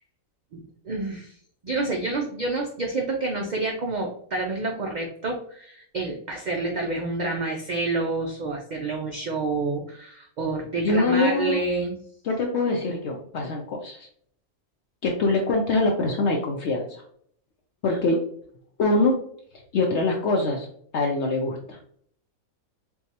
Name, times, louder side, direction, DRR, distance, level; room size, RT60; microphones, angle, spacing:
voice 1, 0.5-1.3 1.6-12.0 17.9-18.0, right 3 dB, 70° right, 1 dB, 0.4 m, -28 dB
voice 2, 10.8-11.6 12.2-14.1 15.0-17.0 17.8-18.2 18.8-19.1 19.7-20.7 20.9-21.8, left 2 dB, 65° left, 0 dB, 0.8 m, -24 dB
4.5 x 2.3 x 2.7 m, 0.62 s
omnidirectional pair, 1.4 m